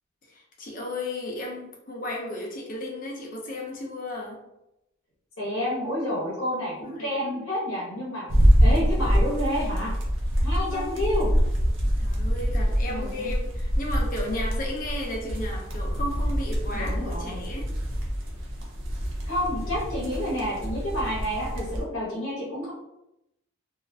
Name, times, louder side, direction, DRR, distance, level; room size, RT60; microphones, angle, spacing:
voice 1, 0.3-4.4 6.8-7.5 10.4-11.0 12.0-17.7, left 1 dB, 40° left, -1 dB, 0.5 m, -34 dB
voice 2, 5.4-8.3 8.6-9.9 10.4-11.3 12.9-13.3 16.7-17.4 19.3-22.7, equal, 75° left, -5 dB, 0.8 m, -29 dB
sound 1, 8.3-21.8, equal, 65° right, 0.6 m, -25 dB
2.4 x 2.0 x 2.6 m, 0.87 s
head